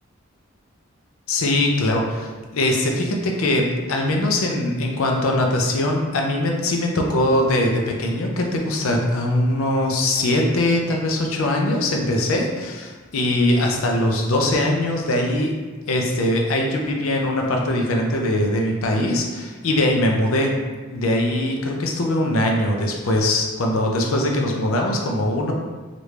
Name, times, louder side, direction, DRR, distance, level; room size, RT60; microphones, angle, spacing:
voice 1, 1.3-15.5 15.9-20.5 20.9-25.5, left 1 dB, 75° left, 1 dB, 0.5 m, -21 dB
3.1 x 2.5 x 3.2 m, 1.3 s
head